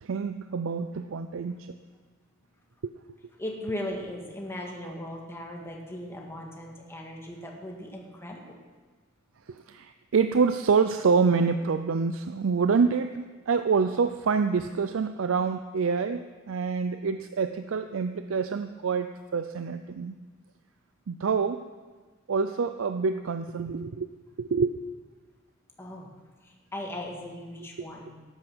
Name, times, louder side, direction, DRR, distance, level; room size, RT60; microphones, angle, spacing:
voice 1, 0.0-1.7 2.8-2.9 9.5-20.1 21.1-21.7 22.3-24.1 24.4-24.8, right 5 dB, 75° right, 9 dB, 0.5 m, -26 dB
voice 2, 3.4-8.6 25.8-26.1 26.4-28.1, left 1 dB, 15° left, -1 dB, 1.7 m, -38 dB
13.0 x 9.2 x 6.2 m, 1.4 s
head